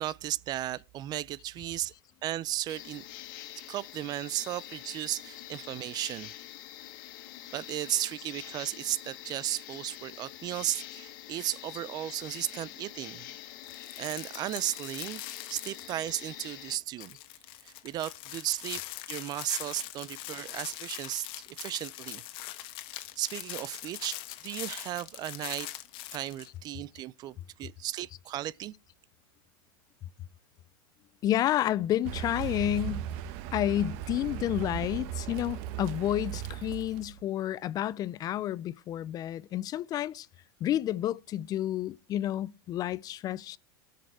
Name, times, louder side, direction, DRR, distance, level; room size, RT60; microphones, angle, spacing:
voice 1, 0.0-1.9 2.2-3.0 3.7-6.3 7.5-13.3 14.0-15.2 15.5-17.2 17.6-18.8 19.1-21.3 21.6-22.2 23.2-25.7 26.1-28.7, right 14 dB, 35° right, 0.4 m, -35 dB
sound 1, 2.7-16.8, left 13 dB, 65° left, 1.7 m, -45 dB
sound 2, 13.7-16.3 16.5-16.6 17.0-26.5, left 15 dB, 50° left, 1.3 m, -42 dB
voice 2, 31.2-33.1 33.5-40.3 40.6-43.6, left 12 dB, 35° left, 0.4 m, -30 dB
Car, 32.0-37.2, right 11 dB, 55° right, 1.1 m, -37 dB
12.5 x 6.7 x 4.7 m
hypercardioid pair, 115°, 12 cm